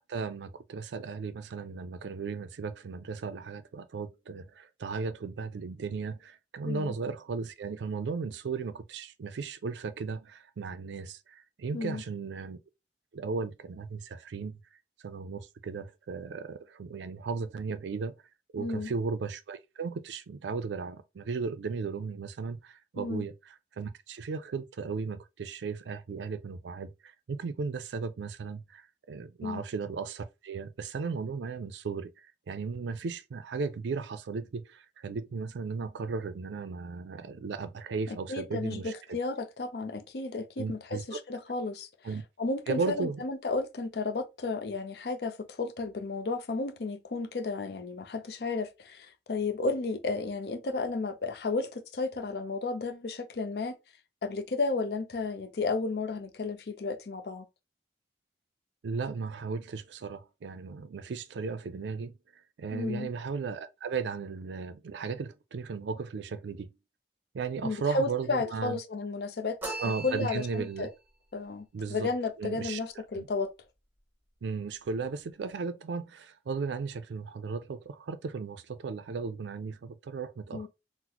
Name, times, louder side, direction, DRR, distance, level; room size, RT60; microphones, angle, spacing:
voice 1, 0.1-12.6 13.1-14.6 15.0-18.1 18.5-23.3 23.8-38.9 40.6-41.2 42.0-42.2 42.7-43.2 58.8-62.1 62.6-66.7 67.3-68.8 69.8-70.9 71.7-72.1 72.4-72.8 73.2-73.3 74.4-80.7, right 4 dB, 85° right, 0.4 m, -36 dB
voice 2, 18.6-18.9 23.0-23.2 29.4-29.6 38.1-41.9 42.4-53.8 54.2-57.5 62.7-63.1 67.6-69.7 70.0-70.9 71.3-73.5 80.5-80.7, left 3 dB, 65° left, 0.5 m, -33 dB
sound 1, 69.6-70.9, right 2 dB, 10° right, 0.9 m, -39 dB
3.9 x 2.0 x 2.9 m
head